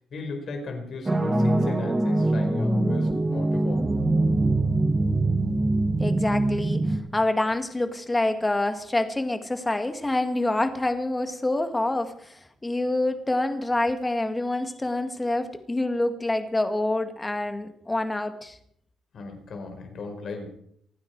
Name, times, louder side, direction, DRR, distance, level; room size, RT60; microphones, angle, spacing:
voice 1, 0.1-3.9 19.1-20.5, left 3 dB, 55° left, 4 dB, 4.9 m, -36 dB
sound 1, 1.1-7.0, right 2 dB, 20° right, 2.4 m, -23 dB
voice 2, 6.0-18.6, left 2 dB, 15° left, 8 dB, 2.0 m, -27 dB
27.5 x 9.7 x 4.8 m, 0.67 s
cardioid pair, 90°, 0 cm